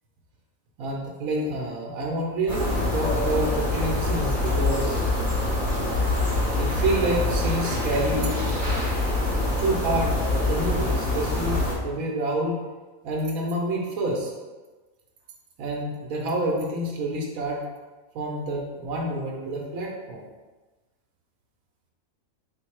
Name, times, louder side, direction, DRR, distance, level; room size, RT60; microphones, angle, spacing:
voice 1, 0.8-5.0 6.5-8.4 9.6-12.6 13.0-14.3 15.6-17.6 18.1-20.2, right 1 dB, 85° right, -1 dB, 1.2 m, -28 dB
sound 1, 2.5-11.7, left 2 dB, ahead, 1.2 m, -25 dB
3.5 x 2.8 x 4.6 m, 1.3 s
omnidirectional pair, 1.4 m